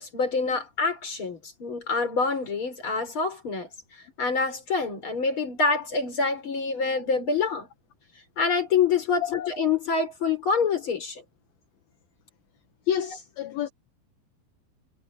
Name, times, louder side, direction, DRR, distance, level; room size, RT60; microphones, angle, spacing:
voice 1, 0.0-3.7 4.2-7.7 8.4-11.2, left 4 dB, 30° left, 6.0 m, -26 dB
voice 2, 12.9-13.7, left 9 dB, 65° left, 3.2 m, -29 dB
omnidirectional pair, 4.7 m